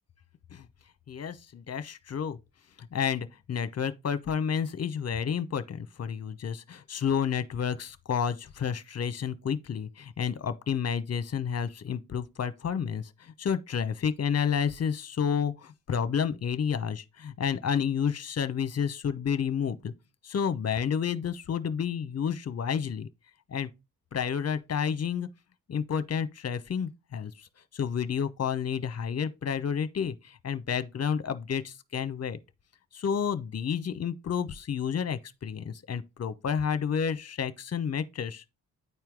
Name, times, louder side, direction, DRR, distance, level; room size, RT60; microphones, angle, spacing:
voice 1, 1.1-2.4 2.8-19.9 20.2-23.1 23.5-23.7 24.1-25.3 25.7-32.4 32.9-38.4, left 7 dB, 40° left, 0.9 m, -30 dB
9.5 x 4.5 x 3.6 m
hypercardioid pair, 40°, 39 cm